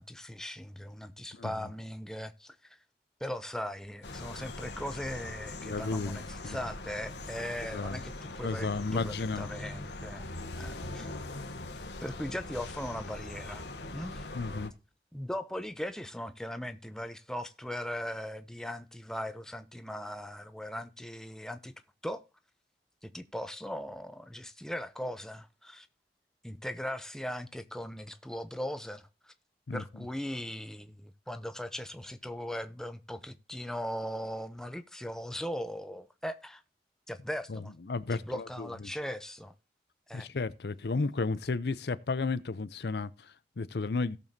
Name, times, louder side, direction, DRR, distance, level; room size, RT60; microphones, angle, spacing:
voice 1, 0.0-2.8 3.2-10.3 10.6-11.1 12.0-14.3 15.1-21.7 22.0-22.2 23.0-25.9 26.4-29.3 29.7-36.6 37.1-37.7 38.1-39.5 40.1-40.3, equal, 5° left, 0.6 m, -39 dB
sound 1, 4.0-14.7, left 2 dB, 85° left, 1.5 m, -41 dB
voice 2, 5.6-6.6 7.7-8.0 8.4-9.5 14.3-14.7 29.7-30.1 37.5-38.9 40.1-44.2, left 3 dB, 65° left, 0.6 m, -33 dB
17.5 x 6.9 x 2.7 m
head